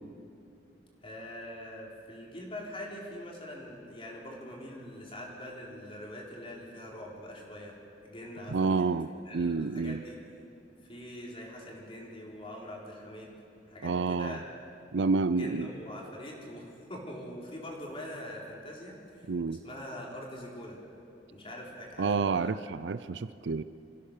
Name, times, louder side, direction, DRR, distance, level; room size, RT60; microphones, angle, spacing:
voice 1, 1.0-7.7 8.0-8.9 9.3-10.2 10.8-13.3 13.7-14.5 15.3-20.8 21.3-22.5, left 1 dB, 30° left, -2 dB, 4.0 m, -43 dB
voice 2, 8.5-9.1 9.3-10.0 13.8-14.4 14.9-15.7 19.3-19.6 22.0-23.6, right 4 dB, 80° right, 14 dB, 0.5 m, -29 dB
25.5 x 16.0 x 6.7 m, 2.6 s
head